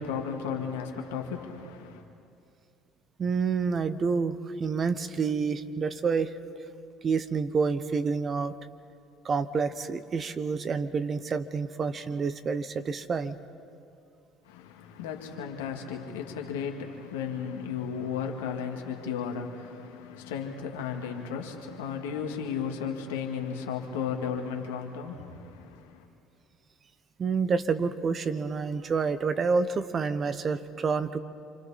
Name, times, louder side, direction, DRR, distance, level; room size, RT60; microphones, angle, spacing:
voice 1, 0.0-2.0 14.4-26.1, left 7 dB, 90° left, 2.1 m, -34 dB
voice 2, 3.2-6.4 7.0-8.6 9.2-13.4 27.2-31.2, right 5 dB, 40° right, 1.1 m, -28 dB
28.5 x 25.0 x 4.3 m
hypercardioid pair, 75°, 0 cm